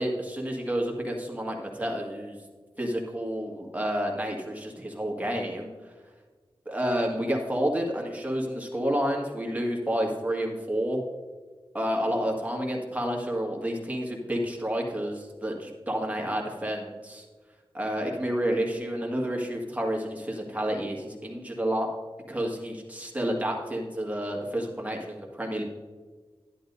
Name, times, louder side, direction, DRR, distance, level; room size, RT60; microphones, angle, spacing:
voice 1, 0.0-2.4 2.8-5.7 6.7-11.0 11.7-17.2 17.7-21.9 22.3-25.6, equal, 15° right, -1 dB, 1.8 m, -30 dB
11.5 x 10.5 x 2.7 m, 1.4 s
wide cardioid pair, 80°, 9 cm